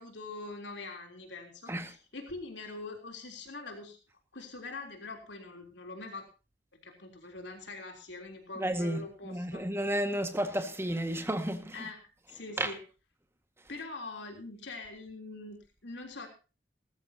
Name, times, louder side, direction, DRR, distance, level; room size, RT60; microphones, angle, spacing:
voice 1, 0.0-4.0 4.3-6.3 6.7-9.7 11.7-12.8 13.7-16.3, left 3 dB, 80° left, 3.4 m, -43 dB
voice 2, 8.6-11.9 12.6-12.7, right 1 dB, 15° right, 1.8 m, -32 dB
19.5 x 14.0 x 2.9 m
head